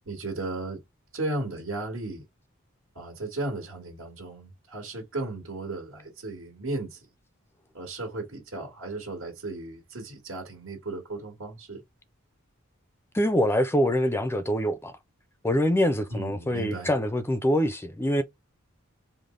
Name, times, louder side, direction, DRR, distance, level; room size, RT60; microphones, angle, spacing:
voice 1, 0.0-0.8 1.1-2.2 2.9-7.0 7.7-11.8 16.1-16.9, right 2 dB, 75° right, 1.6 m, -35 dB
voice 2, 13.1-14.9 15.4-18.2, equal, 10° left, 0.4 m, -24 dB
5.1 x 2.0 x 3.7 m
head